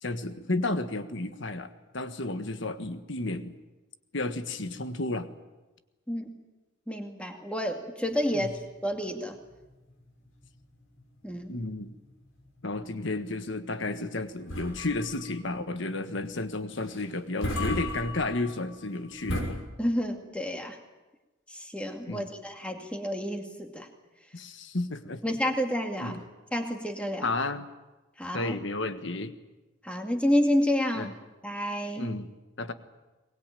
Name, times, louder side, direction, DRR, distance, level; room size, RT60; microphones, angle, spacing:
voice 1, 0.0-3.6 4.1-5.3 8.3-8.5 11.5-11.9 12.6-19.6 22.1-22.3 24.3-25.2 26.0-26.2 27.2-27.7 28.3-29.3 30.9-31.1 32.0-32.7, left 2 dB, 60° left, 10 dB, 1.5 m, -32 dB
voice 2, 6.9-9.4 11.2-11.6 19.8-20.8 21.5-23.9 25.2-26.2 26.5-27.3 28.2-28.5 29.8-31.1 31.4-32.2, equal, 5° left, 3 dB, 2.4 m, -29 dB
sound 1, 8.1-19.4, left 1 dB, 80° left, 6.5 m, -38 dB
23.0 x 20.5 x 9.1 m, 1.1 s
head